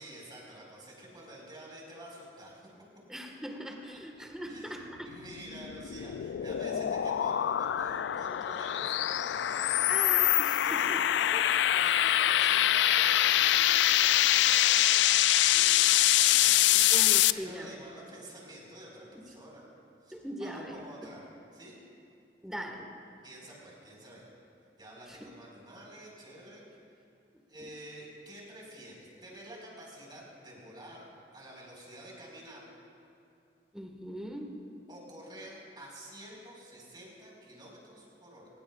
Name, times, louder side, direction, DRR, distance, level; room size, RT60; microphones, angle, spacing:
voice 1, 0.0-2.7 4.4-10.1 10.6-16.9 17.2-19.6 20.0-21.2 21.5-21.8 23.2-24.3 24.8-26.7 27.5-32.7 34.9-38.5, right 1 dB, 25° right, -3 dB, 4.6 m, -49 dB
voice 2, 3.1-5.1 6.7-7.0 9.9-11.0 16.7-17.8 20.1-21.1 22.4-22.9 25.1-25.3 27.6-27.7 33.7-34.6, equal, 5° right, 2 dB, 1.5 m, -41 dB
sound 1, 5.3-17.3, left 13 dB, 80° left, 0.3 m, -25 dB
24.0 x 20.0 x 2.4 m, 2.5 s
head